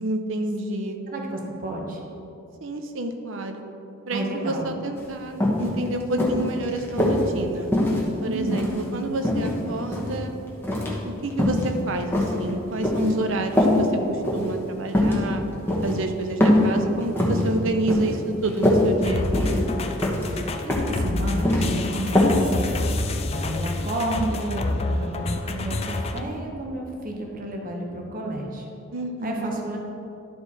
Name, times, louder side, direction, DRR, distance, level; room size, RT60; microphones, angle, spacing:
voice 1, 0.0-1.0 2.6-3.6 4.1-7.7 8.2-10.3 11.0-15.4 15.8-19.7 28.9-29.5, right 2 dB, 65° right, 6 dB, 0.6 m, -29 dB
voice 2, 1.1-2.0 4.1-4.7 8.2-8.8 20.3-28.7 29.2-29.8, right 1 dB, 40° right, 0 dB, 0.9 m, -31 dB
sound 1, 5.0-5.1 5.4-5.7 6.2-7.2 7.7-8.8 9.2-10.2 10.6-11.0 11.3-11.7 12.1-13.1 13.5-13.8 14.2-14.5 14.9-15.2 15.7-15.9 16.4-16.7 17.0-17.4 17.9-18.2 18.4-18.8 19.3-19.7 20.0-20.3 20.7-21.0 21.2-21.6 22.2-22.4 22.7-22.8, left 1 dB, 10° left, 1.1 m, -21 dB
sound 2, 19.0-26.2, left 2 dB, 30° left, 0.4 m, -28 dB
11.5 x 4.5 x 4.1 m, 2.7 s
head